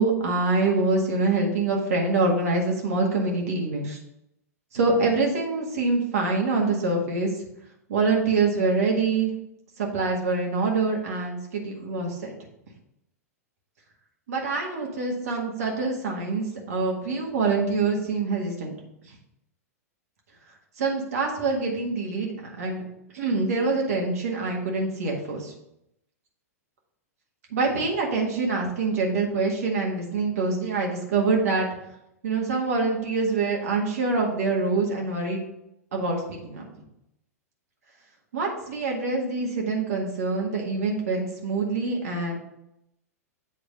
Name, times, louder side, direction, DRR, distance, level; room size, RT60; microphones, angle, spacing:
voice 1, 0.0-4.0 4.7-7.3 7.9-9.3 9.8-12.3 14.3-18.7 19.1-19.2 20.8-22.3 22.6-22.8 23.1-25.5 27.5-31.7 32.2-35.4 35.9-36.7 38.3-42.4, right 3 dB, 65° right, -1 dB, 1.7 m, -25 dB
8.1 x 3.3 x 5.4 m, 0.83 s
figure-of-eight pair, 100°, 9 cm